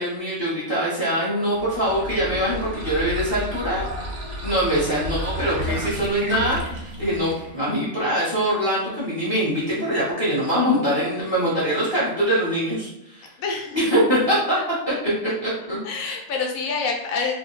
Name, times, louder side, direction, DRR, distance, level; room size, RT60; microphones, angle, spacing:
voice 1, 0.0-3.9 4.4-13.3 13.7-14.6 14.9-15.0 15.4-15.8, equal, 25° left, -9 dB, 0.8 m, -23 dB
sound 1, 1.5-7.6, equal, 65° right, 0.9 m, -32 dB
voice 2, 13.4-13.8 15.3-15.4 15.8-17.3, left 4 dB, 80° left, 1 dB, 1.1 m, -27 dB
2.6 x 2.1 x 3.9 m, 0.82 s
omnidirectional pair, 1.4 m